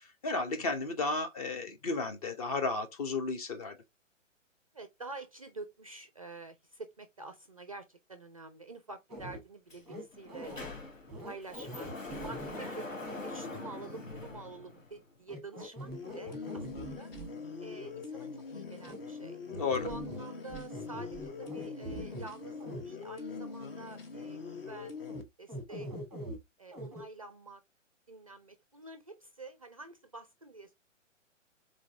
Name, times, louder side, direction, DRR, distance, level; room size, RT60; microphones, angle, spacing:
voice 1, 0.0-3.8 19.5-19.9, left 3 dB, 30° left, 0.8 m, -33 dB
voice 2, 4.7-10.5 11.2-17.1 17.6-19.4 19.8-25.1 25.4-25.9 26.6-27.6 28.1-30.7, right 3 dB, 30° right, 0.4 m, -48 dB
sound 1, 9.1-9.4 9.9-10.7 11.1-13.2 13.5-13.6 15.3-17.3 18.8-19.0 19.5-20.2 20.5-22.3 22.6-22.8 25.1-25.2 25.5-26.4 26.7-27.0, equal, ahead, 1.0 m, -43 dB
Sliding door, 9.7-9.8 10.1-15.1, left 3 dB, 80° left, 1.5 m, -44 dB
sound 2, 15.9-25.2, left 5 dB, 45° left, 1.2 m, -43 dB
3.8 x 3.8 x 3.4 m
figure-of-eight pair, 130°, 38 cm